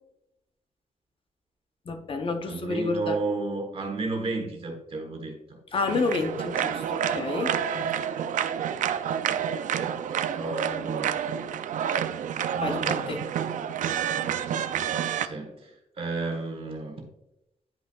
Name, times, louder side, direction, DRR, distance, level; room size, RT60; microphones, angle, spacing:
voice 1, 1.9-3.2 5.7-7.5 12.6-13.2, left 4 dB, 45° left, 0.7 m, -29 dB
voice 2, 2.5-5.6 7.7-8.0 10.3-11.1 12.5-13.2 15.2-17.1, right 3 dB, 45° right, 1.2 m, -33 dB
sound 1, 5.9-15.3, right 9 dB, 80° right, 0.4 m, -29 dB
10.0 x 5.6 x 2.3 m
wide cardioid pair, 160°, 13 cm